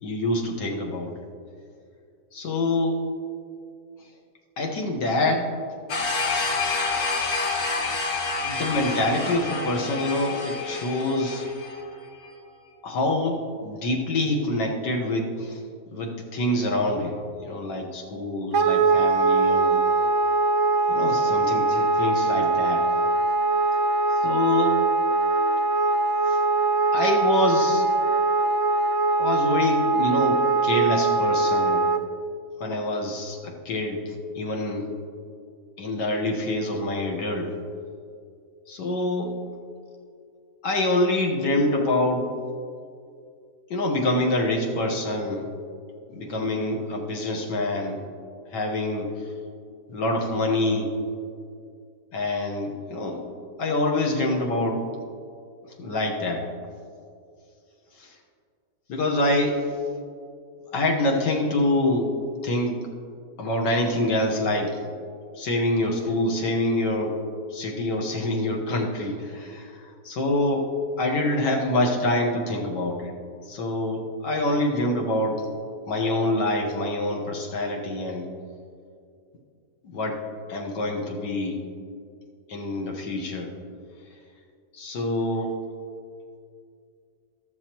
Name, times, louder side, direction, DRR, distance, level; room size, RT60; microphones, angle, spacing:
voice 1, 0.0-1.1 2.3-3.0 4.6-5.5 8.4-11.4 12.8-15.6 15.9-19.8 20.9-22.8 24.2-24.8 26.3-26.4 26.9-27.9 29.2-31.8 32.6-34.9 35.8-37.5 38.7-39.4 40.6-42.3 43.7-45.5 46.1-48.0 48.5-49.1 49.9-50.9 52.1-53.2 53.6-54.8 55.8-56.5 58.0-58.1 58.9-59.6 60.7-62.1 62.4-62.8 63.4-64.8 65.4-67.2 67.5-69.7 70.0-70.7 71.0-73.1 73.5-75.5 75.9-78.3 79.8-80.2 80.5-81.6 82.5-83.5 84.7-85.5, left 1 dB, 90° left, 1 dB, 1.9 m, -26 dB
sound 1, 5.9-11.8, left 3 dB, 60° left, 1.7 m, -28 dB
Wind instrument woodwind instrument, 18.5-32.0, right 3 dB, 65° right, 0.7 m, -22 dB
13.5 x 13.0 x 3.0 m, 2.3 s
omnidirectional pair, 1.8 m